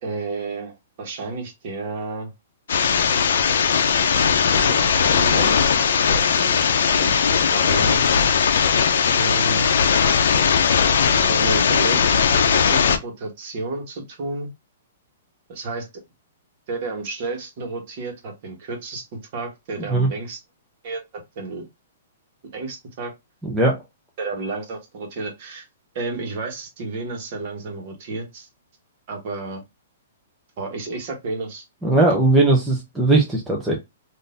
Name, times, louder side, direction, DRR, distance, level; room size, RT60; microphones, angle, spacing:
voice 1, 0.0-2.3 4.4-5.6 6.1-6.7 7.0-7.2 7.5-8.0 9.1-9.7 11.2-14.5 15.5-15.9 16.7-20.4 20.8-21.6 22.5-23.1 24.2-25.6 25.9-28.5 29.1-29.6 30.6-31.6, right 3 dB, 40° right, 1.2 m, -31 dB
sound 1, 2.7-13.0, left 6 dB, 70° left, 0.5 m, -18 dB
voice 2, 23.4-23.8 31.8-33.8, right 2 dB, 5° right, 0.6 m, -18 dB
3.7 x 2.6 x 2.5 m
hypercardioid pair, 170°, 0 cm